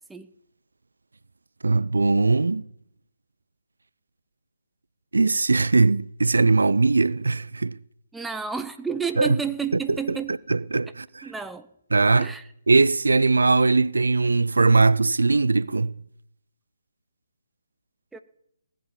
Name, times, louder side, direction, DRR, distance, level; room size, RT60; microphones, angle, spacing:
voice 1, 1.6-2.7 5.1-7.8 9.2-9.4 10.1-10.2 10.5-11.3 11.9-12.3 12.7-15.9, right 3 dB, 75° right, 0.5 m, -20 dB
voice 2, 8.1-10.3 11.2-11.7 12.2-12.5 18.1-18.2, right 5 dB, 5° right, 0.6 m, -31 dB
18.5 x 7.6 x 7.1 m
figure-of-eight pair, 145°, 0 cm